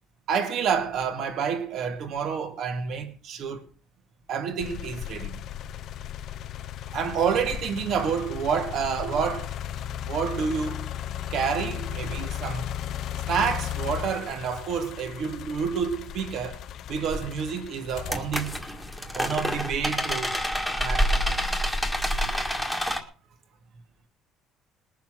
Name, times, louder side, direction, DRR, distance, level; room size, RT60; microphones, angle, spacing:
voice 1, 0.3-3.6 4.3-5.4 6.9-9.5 10.0-10.9 11.3-12.7 13.3-16.6 16.9-18.6 19.1-20.4 20.8-21.1 22.2-22.4, right 6 dB, 50° right, 2.1 m, -29 dB
sound 1, 4.6-19.6 20.2-21.4, left 11 dB, 50° left, 0.6 m, -36 dB
sound 2, 17.1-17.3 17.9-23.0, equal, ahead, 1.8 m, -27 dB
20.5 x 7.1 x 6.2 m
cardioid pair, 160°, 0 cm